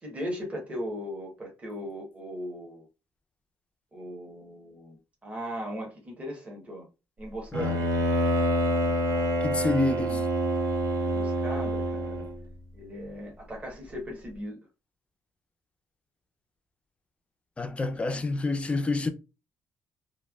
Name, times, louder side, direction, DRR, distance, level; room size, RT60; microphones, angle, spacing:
voice 1, 0.0-2.8 3.9-6.9 7.2-7.9 11.0-12.3 12.7-14.7, equal, 20° right, 1.0 m, -38 dB
Bowed string instrument, 7.5-12.4, equal, 65° right, 0.8 m, -27 dB
voice 2, 9.4-10.2 17.6-19.1, left 3 dB, 15° left, 0.4 m, -28 dB
3.1 x 2.1 x 2.3 m
cardioid pair, 120°, 7 cm